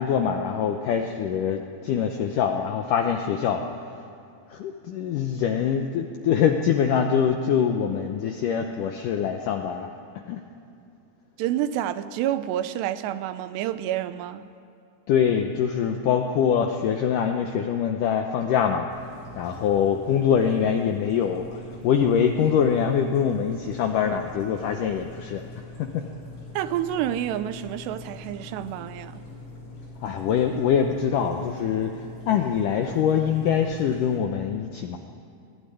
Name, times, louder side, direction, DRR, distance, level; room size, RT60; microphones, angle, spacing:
voice 1, 0.0-3.6 4.5-9.9 10.3-10.4 15.1-18.9 19.4-25.4 25.8-26.1 30.0-35.0, left 7 dB, 80° left, 1.9 m, -24 dB
voice 2, 11.4-14.5 26.5-29.3, right 11 dB, 85° right, 2.8 m, -28 dB
sound 1, 18.9-34.2, left 2 dB, 35° left, 6.6 m, -43 dB
20.0 x 16.0 x 9.8 m
omnidirectional pair, 4.9 m